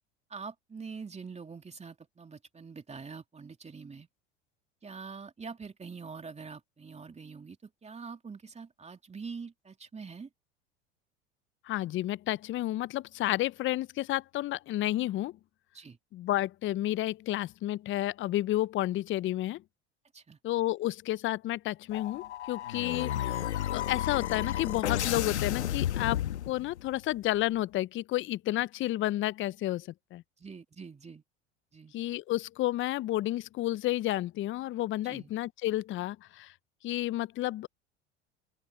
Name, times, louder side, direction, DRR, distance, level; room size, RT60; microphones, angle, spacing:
voice 1, 0.3-4.1 4.8-10.3 15.7-16.0 20.1-20.4 30.4-31.2 31.7-31.9 35.0-35.3, right 5 dB, 20° right, 2.8 m, -44 dB
voice 2, 11.6-15.4 16.1-19.6 20.4-23.4 23.7-26.2 26.5-30.2 31.9-36.5 36.8-37.7, left 15 dB, 35° left, 0.6 m, -31 dB
sound 1, 21.9-26.9, left 12 dB, 85° left, 1.2 m, -32 dB
open air
hypercardioid pair, 80°, 33 cm